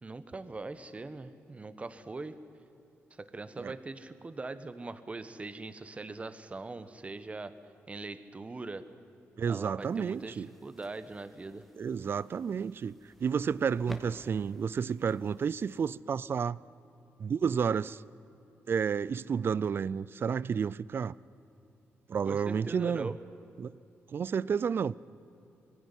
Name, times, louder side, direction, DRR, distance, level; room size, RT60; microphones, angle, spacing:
voice 1, 0.0-2.4 3.1-7.5 7.9-8.9 9.5-11.6 22.2-23.2, right 3 dB, 25° right, 1.2 m, -41 dB
voice 2, 9.4-10.5 11.8-13.0 13.2-16.6 17.2-18.0 18.7-21.1 22.1-23.1 23.6-23.7 24.1-24.9, right 6 dB, 50° right, 0.4 m, -31 dB
sound 1, 9.8-16.0, equal, ahead, 1.9 m, -53 dB
21.0 x 17.0 x 9.9 m
cardioid pair, 95°, 5 cm